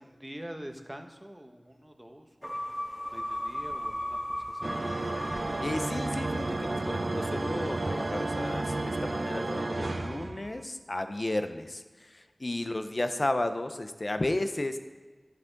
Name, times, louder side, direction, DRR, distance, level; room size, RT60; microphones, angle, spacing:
voice 1, 0.0-4.7, equal, 10° right, 5 dB, 0.9 m, -46 dB
sound 1, 2.4-8.8, equal, 20° left, 1.9 m, -38 dB
sound 2, 4.6-10.6, right 2 dB, 55° right, 0.4 m, -32 dB
voice 2, 5.6-14.8, left 1 dB, 45° left, 9 dB, 0.6 m, -33 dB
12.0 x 6.0 x 3.9 m, 1.4 s
wide cardioid pair, 55°, 0 cm